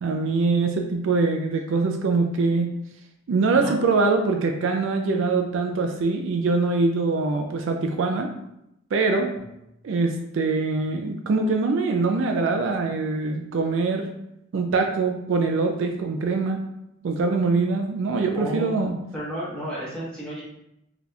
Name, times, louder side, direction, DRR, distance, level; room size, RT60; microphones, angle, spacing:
voice 1, 0.0-2.7 3.3-8.3 8.9-9.3 9.8-14.1 14.5-16.6 17.0-18.9, right 3 dB, 60° right, 3 dB, 0.3 m, -23 dB
voice 2, 18.3-18.8 19.1-20.4, right 1 dB, 5° left, -8 dB, 1.1 m, -32 dB
3.9 x 2.8 x 2.3 m, 0.83 s
head